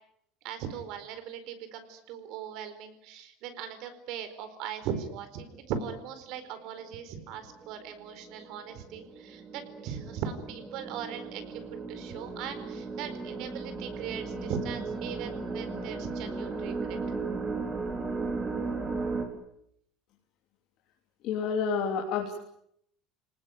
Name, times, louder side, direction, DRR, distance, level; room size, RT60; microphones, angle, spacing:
voice 1, 0.4-11.6 11.9-17.0, right 8 dB, 55° right, 10 dB, 4.5 m, -39 dB
sound 1, 5.5-6.0 6.9-7.0 7.5-19.3, right 4 dB, 20° right, 4.2 m, -36 dB
voice 2, 21.2-22.3, left 6 dB, 45° left, 1 dB, 3.2 m, -29 dB
30.0 x 19.5 x 9.3 m, 0.72 s
cardioid pair, 170°, 0 cm